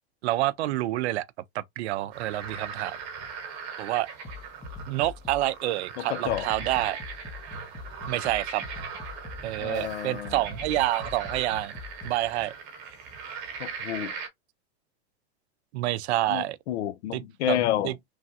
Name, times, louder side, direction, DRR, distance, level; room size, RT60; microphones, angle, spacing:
voice 1, 0.2-1.3 1.5-3.0 3.8-4.1 4.9-7.0 8.1-8.6 9.4-11.7 12.0-12.5 15.7-16.6 17.1-17.6 17.8-17.9, right 15 dB, 90° right, 0.5 m, -28 dB
sound 1, 2.1-14.3, right 6 dB, 55° right, 1.1 m, -39 dB
sound 2, 4.2-5.5 6.2-12.2, left 3 dB, 15° left, 0.8 m, -43 dB
voice 2, 6.0-6.5 9.6-10.4 13.6-14.1 16.3-17.9, left 12 dB, 85° left, 0.6 m, -30 dB
3.2 x 2.2 x 2.7 m
supercardioid pair, 135°, 32 cm